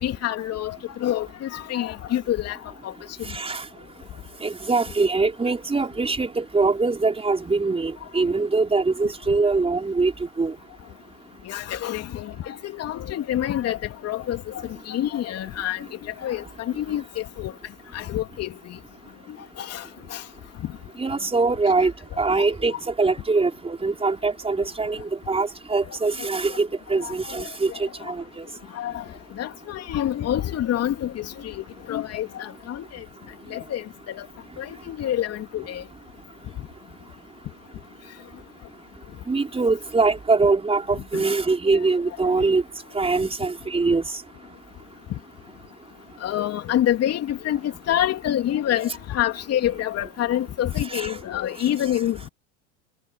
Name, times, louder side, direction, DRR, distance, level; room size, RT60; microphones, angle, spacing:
voice 1, 0.0-2.6 2.8-2.9 11.4-17.5 17.9-18.8 19.6-20.2 22.4-22.5 25.8-26.0 27.0-28.1 28.7-29.0 29.4-33.0 33.5-34.3 34.6-35.8 41.1-41.2 46.2-52.3, left 12 dB, 40° left, 3.3 m, -27 dB
voice 2, 3.3-3.7 4.4-10.5 21.0-21.9 22.2-28.5 39.3-42.6 42.9-44.1 50.9-51.1, right 3 dB, 15° right, 5.4 m, -23 dB
hypercardioid pair, 90°, 37 cm